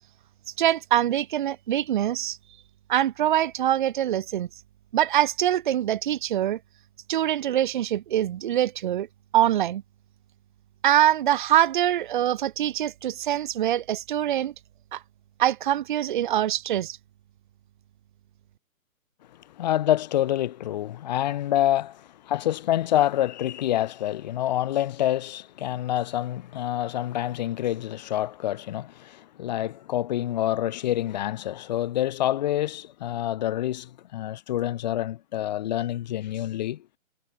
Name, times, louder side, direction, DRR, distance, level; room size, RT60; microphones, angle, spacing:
voice 1, 0.6-2.4 2.9-4.5 4.9-6.6 7.1-9.1 9.3-9.8 10.8-14.5 14.9-15.0 15.4-17.0, right 11 dB, 35° right, 3.4 m, -24 dB
voice 2, 19.6-36.8, left 13 dB, 30° left, 3.3 m, -27 dB
hypercardioid pair, 165°, 42 cm